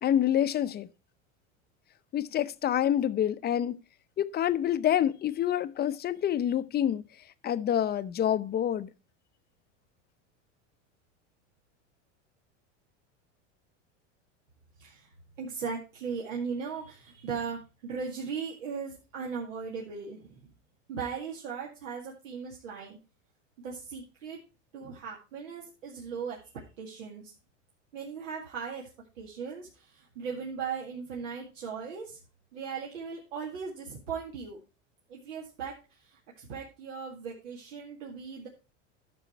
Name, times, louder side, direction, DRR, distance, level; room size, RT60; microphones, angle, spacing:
voice 1, 0.0-0.9 2.1-3.8 4.2-7.0 7.4-8.9, left 10 dB, 25° left, 0.6 m, -27 dB
voice 2, 14.8-15.1 15.4-20.4 20.9-23.0 23.6-24.4 24.7-27.3 27.9-28.9 29.2-32.2 32.5-34.6 35.1-38.5, right 6 dB, 80° right, 2.1 m, -38 dB
11.0 x 6.3 x 4.4 m
hypercardioid pair, 105°, 37 cm